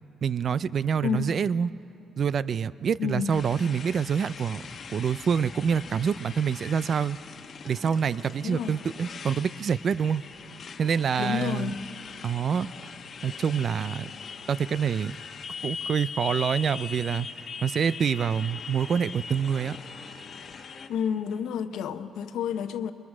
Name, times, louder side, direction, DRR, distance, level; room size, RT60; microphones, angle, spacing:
voice 1, 0.2-1.7 2.2-4.6 4.9-7.2 7.6-10.2 10.8-11.7 12.2-12.9 13.2-14.1 14.5-15.2 15.6-17.3 17.6-19.8, right 7 dB, 55° right, 18 dB, 0.4 m, -26 dB
voice 2, 3.0-3.4 8.4-8.8 11.2-11.8 20.9-22.9, left 8 dB, 80° left, 10 dB, 0.8 m, -30 dB
Motorcycle, 3.3-20.9, left 5 dB, 50° left, 1.1 m, -41 dB
23.5 x 21.5 x 6.1 m, 3.0 s
cardioid pair, 90°, 0 cm